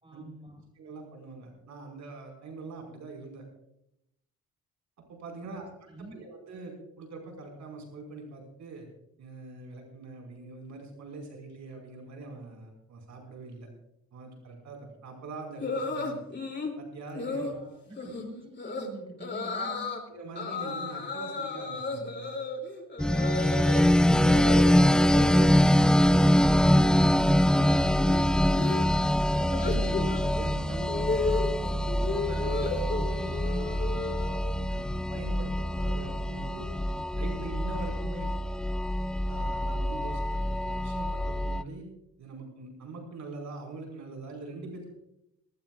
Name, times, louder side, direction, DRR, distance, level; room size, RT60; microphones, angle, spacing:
voice 1, 0.0-0.6 5.4-5.6 5.9-6.2 17.3-20.0, right 2 dB, 20° right, 1 dB, 5.7 m, -47 dB
voice 2, 0.8-3.4 5.1-5.7 6.0-8.9 9.2-13.7 14.1-16.2 16.8-17.5 18.0-18.1 19.6-22.3 24.3-29.2 29.6-34.2 34.7-36.7 37.1-38.3 39.3-41.9 42.2-44.9, right 3 dB, 70° right, 1 dB, 5.3 m, -43 dB
sound 1, 15.6-16.8 17.2-17.5 18.0-18.2 18.6-18.9 19.2-20.0 20.4-23.8 24.1-25.4 25.7-26.1 26.4-34.6, left 4 dB, 35° left, 2.9 m, -34 dB
sound 2, 23.0-41.6, equal, 5° left, 0.4 m, -24 dB
20.0 x 19.0 x 2.5 m, 0.82 s
cardioid pair, 90°, 30 cm